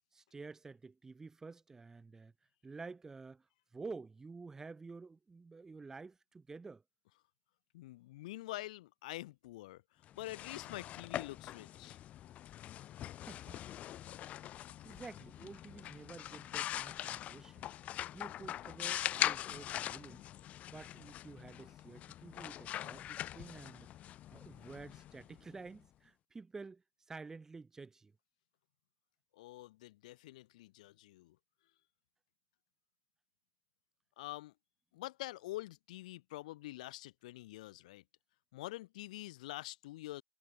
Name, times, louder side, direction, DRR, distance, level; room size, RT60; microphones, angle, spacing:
voice 1, 0.1-2.3 2.6-3.5 3.7-6.8 13.3-13.6 14.8-17.7 18.1-20.2 20.7-28.1, right 4 dB, 15° right, 1.9 m, -50 dB
voice 2, 7.7-12.0 29.3-31.4 34.2-34.5 34.9-38.0 38.5-40.2, left 17 dB, 90° left, 0.9 m, -46 dB
sound 1, 10.1-25.8, left 12 dB, 35° left, 1.0 m, -42 dB
supercardioid pair, 140°, 4 cm